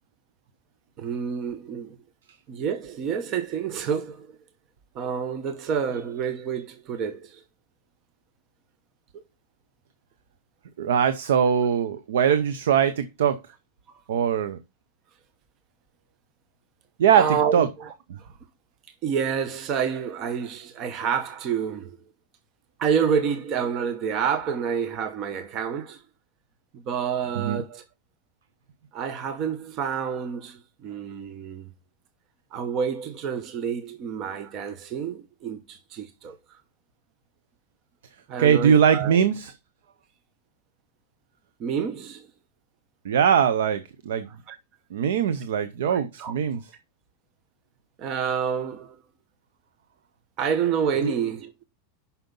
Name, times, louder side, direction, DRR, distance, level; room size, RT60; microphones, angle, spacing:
voice 1, 1.0-2.0 2.5-4.3 4.9-7.4 9.1-9.2 17.1-18.3 19.0-22.0 22.8-26.0 26.7-27.8 28.9-31.7 32.5-36.6 38.3-39.2 41.6-42.3 44.5-44.6 45.9-46.3 48.0-49.0 50.4-51.6, right 7 dB, 35° right, 0.9 m, -28 dB
voice 2, 10.8-13.4 14.1-14.6 17.0-17.7 18.1-18.2 27.4-27.6 38.4-39.5 43.0-44.3 44.9-46.6 51.0-51.1, right 8 dB, 90° right, 0.8 m, -21 dB
7.7 x 5.9 x 5.4 m
supercardioid pair, 155°, 0 cm